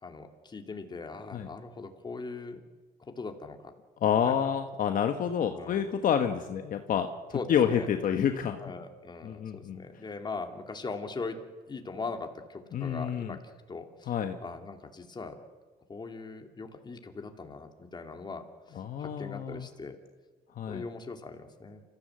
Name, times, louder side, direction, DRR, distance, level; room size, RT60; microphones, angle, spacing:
voice 1, 0.0-2.6 3.1-3.7 4.2-4.5 5.5-5.9 7.3-7.9 8.6-11.4 11.7-13.4 13.7-14.1 14.4-15.4 15.9-20.0 20.7-21.8, left 4 dB, 25° left, 4 dB, 2.6 m, -40 dB
voice 2, 4.0-7.1 7.5-8.6 9.2-9.8 12.7-13.4 14.1-14.4 18.8-19.6 20.6-20.8, left 8 dB, 55° left, 6 dB, 1.4 m, -28 dB
28.5 x 15.0 x 7.8 m, 1.3 s
cardioid pair, 110°, 17 cm